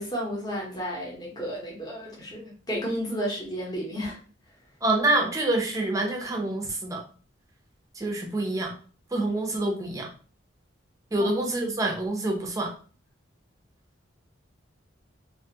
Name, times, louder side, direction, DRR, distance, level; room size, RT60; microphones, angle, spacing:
voice 1, 0.0-4.2 11.2-11.3 11.6-11.8, equal, 20° left, -3 dB, 0.8 m, -32 dB
voice 2, 4.8-7.0 8.0-8.7 9.1-10.1 11.1-12.7, right 2 dB, 15° right, 1 dB, 0.5 m, -26 dB
2.5 x 2.3 x 2.7 m, 0.39 s
head